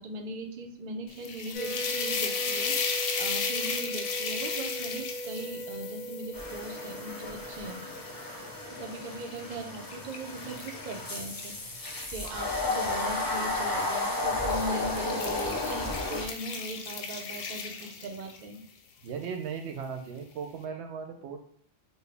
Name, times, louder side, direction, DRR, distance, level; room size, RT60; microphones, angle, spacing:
voice 1, 0.0-7.9 8.7-18.6, right 2 dB, 55° right, 4 dB, 0.6 m, -39 dB
sound 1, 1.1-8.3 8.8-12.8 13.7-14.0 14.4-18.5, left 5 dB, 65° left, 0.7 m, -36 dB
sound 2, 1.5-9.6, right 1 dB, 5° right, 1.1 m, -39 dB
sound 3, 6.3-16.3, left 2 dB, 25° left, 0.5 m, -33 dB
voice 2, 19.0-21.4, right 6 dB, 85° right, 5 dB, 0.9 m, -37 dB
4.3 x 2.0 x 3.3 m, 0.67 s
omnidirectional pair, 1.1 m